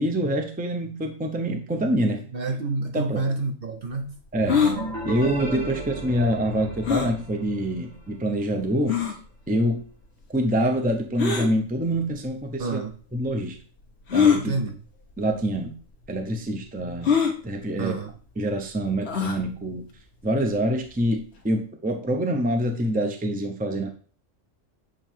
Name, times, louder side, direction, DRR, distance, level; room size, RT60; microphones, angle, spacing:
voice 1, 0.0-2.2 2.9-3.2 4.3-4.6 5.0-9.0 9.5-9.8 10.3-12.8 13.1-13.6 14.1-14.6 15.2-15.8 16.1-18.0 18.4-19.9 20.2-23.9, right 1 dB, 10° right, 4 dB, 0.6 m, -26 dB
voice 2, 2.3-4.1 12.6-13.0 14.4-14.8 17.8-18.1, right 3 dB, 50° right, 4 dB, 0.8 m, -28 dB
sound 1, 4.3-8.0, right 2 dB, 85° right, 3.2 m, -34 dB
sound 2, 4.5-4.8 6.9-7.1 7.9-8.0 8.9-9.2 11.2-11.5 12.6-12.7 14.1-14.4 15.3-15.5 15.8-15.9 17.0-17.4 19.1-19.4, left 7 dB, 55° left, 1.3 m, -22 dB
7.5 x 3.1 x 4.5 m, 0.41 s
omnidirectional pair, 1.4 m